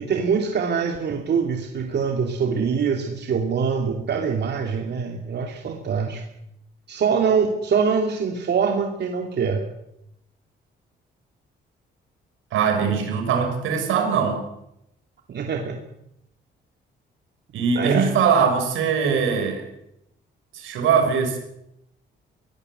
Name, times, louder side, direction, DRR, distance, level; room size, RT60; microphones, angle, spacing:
voice 1, 0.0-6.2 6.9-9.6 15.3-15.8 17.7-18.1, right 6 dB, 60° right, 3 dB, 2.8 m, -24 dB
voice 2, 12.5-14.4 17.5-19.7 20.5-21.4, right 6 dB, 85° right, 5 dB, 6.4 m, -21 dB
23.0 x 17.5 x 8.1 m, 0.82 s
cardioid pair, 90°, 20 cm